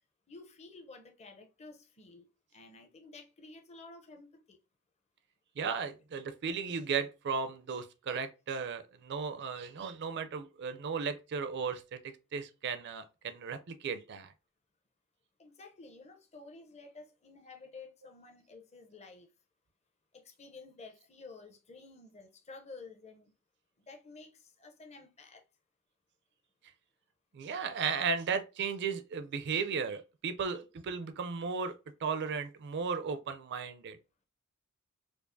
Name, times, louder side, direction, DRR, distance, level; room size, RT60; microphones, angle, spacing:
voice 1, 0.3-4.6 15.4-19.3 20.4-23.3 23.8-25.4, left 3 dB, 30° left, 0.6 m, -52 dB
voice 2, 5.6-14.3 27.3-31.7 32.0-34.0, right 5 dB, 55° right, 0.4 m, -35 dB
4.6 x 2.4 x 2.6 m
head